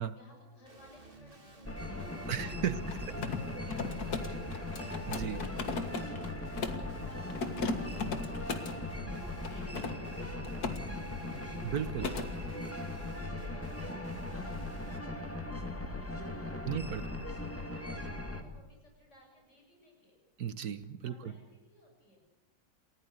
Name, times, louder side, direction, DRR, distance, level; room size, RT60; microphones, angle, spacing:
voice 1, 0.0-4.7 5.7-20.2 21.0-22.3, left 1 dB, 35° left, 0 dB, 7.6 m, -61 dB
Guitar, 0.6-15.0, right 3 dB, 25° right, 2.4 m, -55 dB
sound 1, 1.6-18.4, left 2 dB, 5° left, 2.1 m, -39 dB
voice 2, 2.3-2.8 3.1-3.2 5.1-5.4 11.6-12.1 16.6-17.0 20.4-21.3, right 8 dB, 55° right, 12 dB, 1.3 m, -35 dB
Mechanisms, 2.8-6.9 7.3-8.8 9.4-10.8 11.1-11.4 11.7-12.3, left 4 dB, 50° left, 2.2 m, -37 dB
28.5 x 16.0 x 8.2 m, 1.0 s
omnidirectional pair, 2.1 m